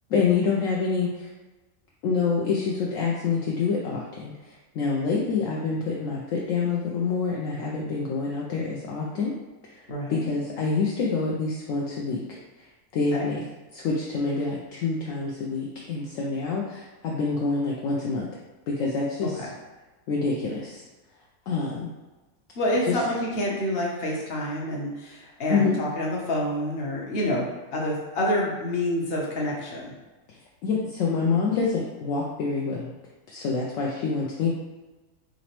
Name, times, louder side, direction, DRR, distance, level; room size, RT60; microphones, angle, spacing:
voice 1, 0.1-1.3 2.0-4.3 4.8-9.3 9.7-9.8 10.1-12.2 12.9-13.4 13.7-18.3 18.7-19.5 20.1-20.8 21.5-21.9 22.9-23.0 25.5-25.8 30.6-32.9 33.3-34.5, left 4 dB, 70° left, -3 dB, 0.9 m, -26 dB
voice 2, 9.9-10.3 13.1-13.3 19.2-19.5 22.6-29.9, left 1 dB, 50° left, -3 dB, 1.0 m, -28 dB
3.9 x 3.1 x 2.9 m, 1.2 s
omnidirectional pair, 1.5 m